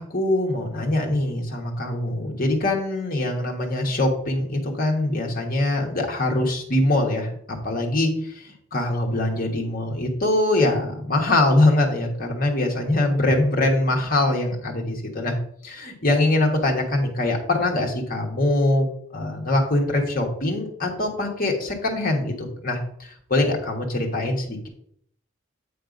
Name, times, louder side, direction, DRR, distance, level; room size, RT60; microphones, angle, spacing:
voice 1, 0.0-15.3 15.6-18.9 19.1-22.8 23.3-24.7, left 1 dB, 40° left, 0 dB, 1.4 m, -23 dB
8.7 x 3.4 x 5.2 m, 0.66 s
head